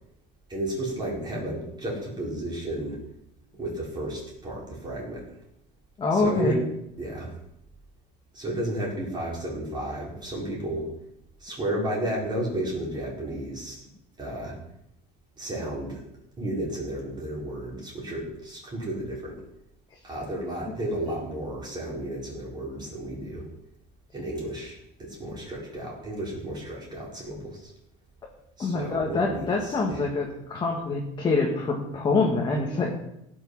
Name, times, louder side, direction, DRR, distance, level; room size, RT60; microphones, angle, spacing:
voice 1, 0.5-3.0 3.6-5.3 6.1-6.6 7.0-7.4 8.3-10.9 11.4-13.9 14.2-14.6 15.4-16.0 16.4-19.4 20.0-23.5 24.1-27.7 28.6-30.0, right 1 dB, 20° right, -4 dB, 4.6 m, -32 dB
voice 2, 6.0-6.6 20.6-20.7 28.6-33.0, left 3 dB, 25° left, -1 dB, 1.9 m, -25 dB
17.5 x 6.5 x 6.2 m, 0.81 s
cardioid pair, 155°, 20 cm